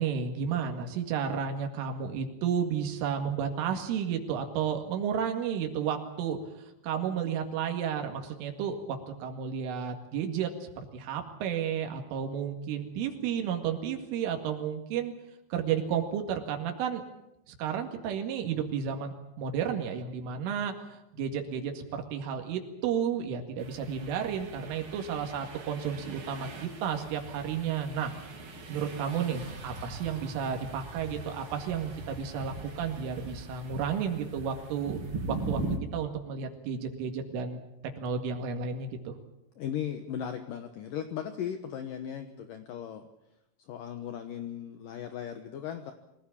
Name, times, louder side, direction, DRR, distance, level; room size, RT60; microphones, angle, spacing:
voice 1, 0.0-6.4 6.8-15.1 15.5-17.0 17.5-28.1 28.7-35.0 35.3-35.6 35.9-37.6 38.0-39.1, right 7 dB, 85° right, 4 dB, 4.6 m, -32 dB
sound 1, 23.6-35.8, right 2 dB, 35° right, 2.6 m, -40 dB
voice 2, 39.6-43.0 43.7-45.9, left 9 dB, 70° left, 8 dB, 2.1 m, -37 dB
24.5 x 17.5 x 8.6 m, 0.86 s
omnidirectional pair, 5.6 m